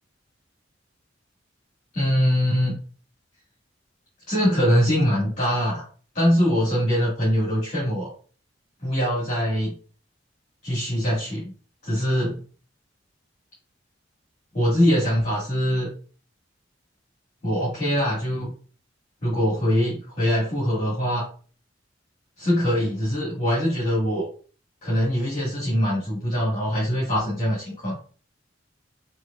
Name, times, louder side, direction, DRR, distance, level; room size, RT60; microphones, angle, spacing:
voice 1, 1.9-2.8 4.3-5.8 6.1-8.1 8.8-9.7 10.6-11.5 11.8-12.4 14.5-15.9 17.4-18.5 19.2-21.2 22.4-24.3 24.8-28.0, equal, 40° left, -8 dB, 1.9 m, -23 dB
6.1 x 3.1 x 2.4 m, 0.41 s
head